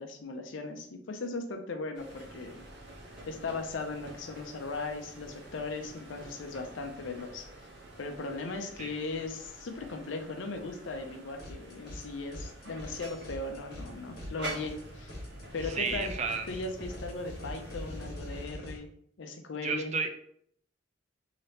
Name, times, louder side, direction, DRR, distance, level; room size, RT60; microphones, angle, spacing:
voice 1, 0.0-2.6 3.3-7.5 8.0-15.1 15.5-16.2 16.5-18.9 19.2-19.9, left 3 dB, 80° left, 6 dB, 0.5 m, -38 dB
sound 1, 1.9-18.5, right 1 dB, 60° right, 0.9 m, -47 dB
sound 2, 11.4-12.0 12.3-18.8, left 1 dB, 55° left, 1.1 m, -44 dB
voice 2, 15.6-16.5 19.6-20.1, right 5 dB, 35° right, 6 dB, 0.3 m, -32 dB
3.2 x 2.8 x 2.8 m, 0.67 s
head